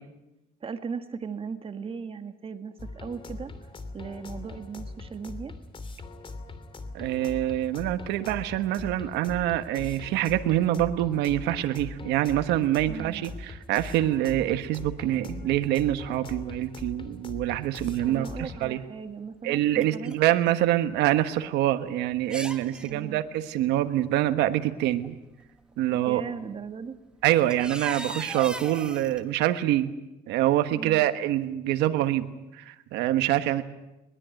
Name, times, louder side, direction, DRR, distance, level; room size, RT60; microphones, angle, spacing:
voice 1, 0.6-3.5 3.9-5.5 12.9-13.3 18.0-20.2 22.7-23.2 25.8-27.0 30.7-31.1, right 5 dB, 35° right, 8 dB, 1.9 m, -37 dB
sound 1, 2.8-18.6, left 3 dB, 30° left, 2.7 m, -41 dB
voice 2, 6.9-18.8 19.4-25.1 25.8-26.2 27.2-29.9 30.3-32.3 32.5-33.6, right 13 dB, 90° right, 9 dB, 1.3 m, -25 dB
sound 2, 18.7-18.8 19.5-20.7 20.9-21.0 21.7-21.8 22.2-22.9 24.3-24.4 25.0-25.4 26.7-26.8 27.1-29.2, right 1 dB, 5° right, 1.9 m, -38 dB
21.5 x 21.0 x 9.0 m, 0.97 s
cardioid pair, 110°, 17 cm